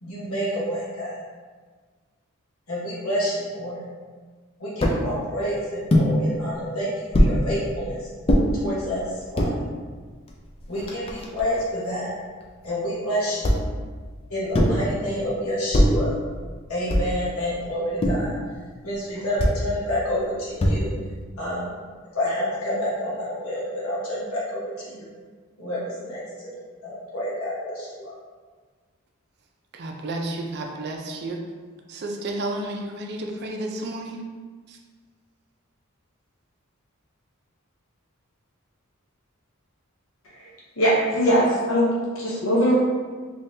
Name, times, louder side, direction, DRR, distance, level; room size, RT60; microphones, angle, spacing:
voice 1, 0.0-1.1 2.7-3.8 4.6-8.0 8.6-9.0 9.3-9.7 10.7-12.1 12.6-13.5 14.3-16.1 16.7-18.4 18.8-20.9 21.4-21.7 22.1-25.1 25.6-26.2 26.8-28.1, equal, 85° left, -6 dB, 1.2 m, -28 dB
sound 1, 4.8-5.0 5.9-6.1 7.1-7.4 8.3-8.4 9.2-9.5 10.3-10.4 10.6-11.6 13.4-13.8 14.5-14.9 15.7-16.1 16.9-17.2 18.0-18.3 19.4-19.6 20.6-21.0, equal, 25° left, 0.4 m, -21 dB
voice 2, 29.7-31.4 31.9-34.2 34.7-34.8, right 2 dB, 50° right, 1 dB, 0.4 m, -31 dB
voice 3, 40.8-42.7, equal, 65° left, -4 dB, 0.7 m, -21 dB
3.6 x 3.1 x 2.7 m, 1.5 s
head